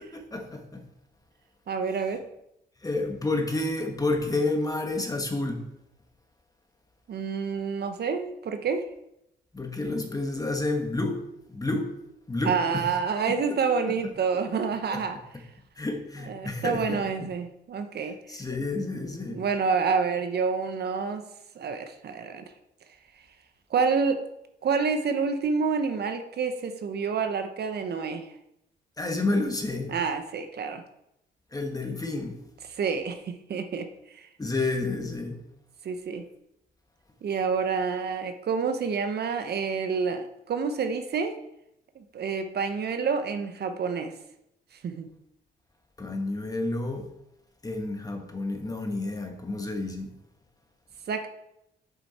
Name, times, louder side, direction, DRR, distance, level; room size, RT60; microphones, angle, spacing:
voice 1, 0.1-0.8 2.8-5.6 9.5-11.2 11.5-11.9 12.3-12.8 13.5-13.8 14.9-15.0 15.8-17.3 18.3-19.4 29.0-30.0 31.5-32.4 34.4-35.4 46.0-47.1 47.6-50.1, left 2 dB, 20° left, 4 dB, 1.5 m, -30 dB
voice 2, 1.7-2.2 7.1-8.9 12.4-15.2 16.2-18.1 19.3-21.3 21.6-22.4 23.7-24.2 24.6-28.3 29.9-30.8 32.8-33.9 34.1-34.3 35.8-36.2 37.2-41.4 42.0-44.1 44.8-45.1 51.1-51.3, right 5 dB, 55° right, 7 dB, 0.9 m, -28 dB
7.8 x 6.4 x 4.3 m, 0.82 s
cardioid pair, 90°, 20 cm